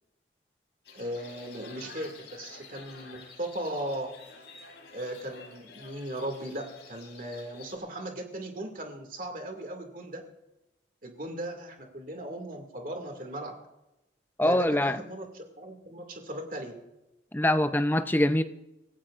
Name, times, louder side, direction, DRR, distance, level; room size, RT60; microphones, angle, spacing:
sound 1, 0.8-7.8, left 4 dB, 70° left, 3.6 m, -50 dB
voice 1, 0.9-4.1 4.9-10.2 11.0-13.5 14.4-16.7, right 1 dB, 45° right, 4 dB, 2.2 m, -37 dB
voice 2, 14.4-15.0 17.3-18.4, left 1 dB, 10° left, 10 dB, 0.5 m, -24 dB
26.0 x 15.5 x 2.5 m, 0.96 s
head